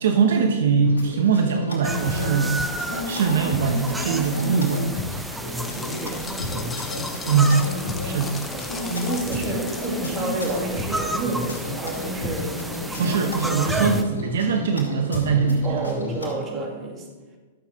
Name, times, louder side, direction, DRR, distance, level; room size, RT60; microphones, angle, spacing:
voice 1, 0.0-2.6 3.1-4.9 7.2-7.6 8.0-8.4 13.0-15.9, right 5 dB, 70° right, 5 dB, 1.0 m, -21 dB
sound 1, 0.8-16.3, left 2 dB, 90° left, 2.6 m, -32 dB
sound 2, 1.8-14.0, right 1 dB, 5° right, 0.6 m, -32 dB
sound 3, 5.6-11.6, left 4 dB, 15° left, 1.0 m, -39 dB
voice 2, 5.7-6.6 8.4-12.5 12.9-13.5 15.6-17.1, right 2 dB, 30° right, 1 dB, 2.2 m, -30 dB
11.5 x 7.4 x 4.3 m, 1.3 s
hypercardioid pair, 115°, 0 cm